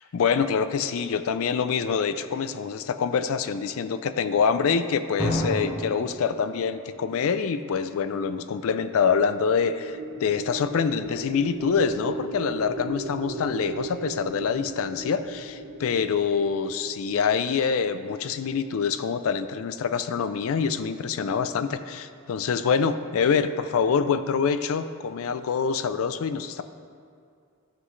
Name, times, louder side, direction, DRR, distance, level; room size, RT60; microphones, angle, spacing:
voice 1, 0.1-26.6, left 6 dB, 65° left, 11 dB, 0.4 m, -25 dB
Drum, 5.2-7.9, equal, 10° right, 1.7 m, -31 dB
sound 1, 9.6-17.8, right 2 dB, 75° right, 1.1 m, -37 dB
12.5 x 7.5 x 3.2 m, 2.3 s
head